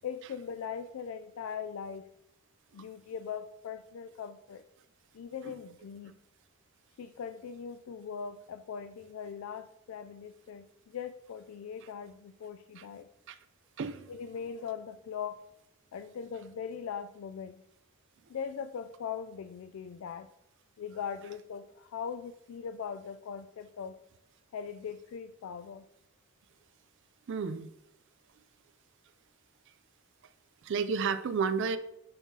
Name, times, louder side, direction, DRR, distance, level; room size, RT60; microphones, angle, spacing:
voice 1, 0.0-2.1 2.7-4.6 5.1-6.1 7.0-13.1 14.1-15.4 15.9-17.6 18.3-20.3 20.8-24.0 24.5-25.9, left 7 dB, 70° left, 9 dB, 0.3 m, -40 dB
voice 2, 13.8-14.1 27.3-27.7 30.6-31.8, right 5 dB, 60° right, 13 dB, 0.4 m, -31 dB
10.5 x 3.7 x 2.8 m, 0.85 s
head